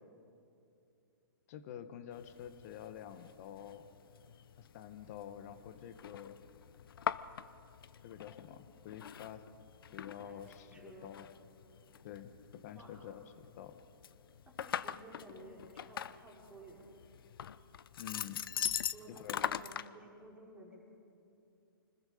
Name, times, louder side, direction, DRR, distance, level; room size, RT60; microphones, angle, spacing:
voice 1, 1.5-3.8 4.6-6.4 8.0-9.4 9.9-11.3 12.0-13.8 18.0-18.4 19.1-19.4, left 10 dB, 40° left, 11 dB, 1.3 m, -48 dB
sound 1, 2.1-19.9, left 9 dB, 70° left, 0.6 m, -43 dB
voice 2, 10.7-11.1 12.7-13.0 14.5-16.8 18.9-20.8, right 1 dB, 10° right, -4 dB, 4.7 m, -54 dB
25.5 x 20.0 x 5.1 m, 2.7 s
hypercardioid pair, 145°, 12 cm